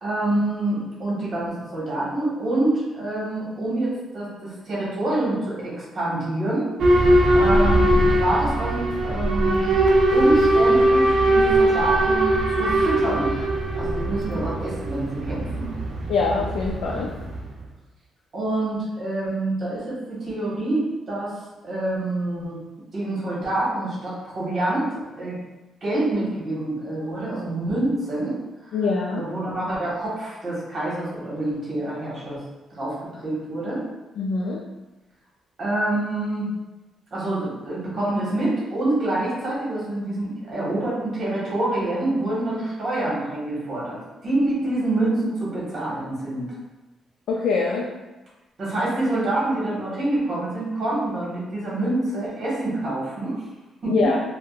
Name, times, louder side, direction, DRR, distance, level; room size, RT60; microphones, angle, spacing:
voice 1, 0.0-6.7 7.0-9.8 10.1-12.3 12.6-13.3 13.8-15.7 18.3-22.6 22.9-25.4 25.8-28.7 29.1-32.4 32.7-33.9 35.6-36.5 37.1-46.5 48.6-53.4 53.8-53.9, right 2 dB, 40° right, -7 dB, 1.2 m, -26 dB
Boat Water vehicle / Alarm, 6.8-17.5, right 1 dB, 60° right, 0.4 m, -20 dB
voice 2, 16.1-17.1 28.7-29.3 34.2-34.6 47.3-47.9 53.9-54.2, left 4 dB, 65° left, -2 dB, 0.3 m, -23 dB
3.5 x 2.1 x 2.3 m, 1.1 s
cardioid pair, 165°, 0 cm